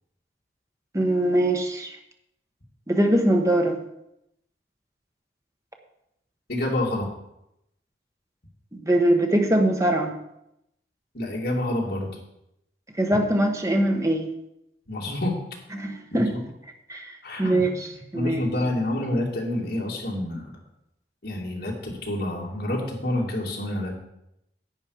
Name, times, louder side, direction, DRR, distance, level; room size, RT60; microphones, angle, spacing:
voice 1, 0.9-2.0 2.9-3.8 8.7-10.1 13.0-14.3 15.7-16.3 16.9-18.4, right 1 dB, 20° right, 3 dB, 1.1 m, -22 dB
voice 2, 6.5-7.1 11.1-12.2 14.9-15.4 16.1-16.2 17.2-17.7 18.1-20.5 21.2-23.9, left 1 dB, 60° left, -1 dB, 2.6 m, -28 dB
10.5 x 8.4 x 5.0 m, 0.83 s
head